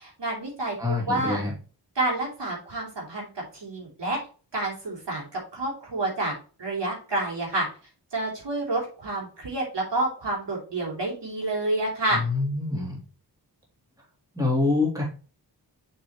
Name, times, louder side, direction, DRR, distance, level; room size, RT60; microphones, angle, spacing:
voice 1, 0.0-0.8 1.1-1.4 2.0-4.2 4.5-6.3 6.6-7.7 8.1-12.3, right 2 dB, 75° right, -3 dB, 3.4 m, -29 dB
voice 2, 0.8-1.6 12.1-13.0 14.3-15.0, left 3 dB, 10° right, -3 dB, 3.0 m, -25 dB
6.7 x 5.3 x 3.0 m, 0.37 s
wide cardioid pair, 100°, 43 cm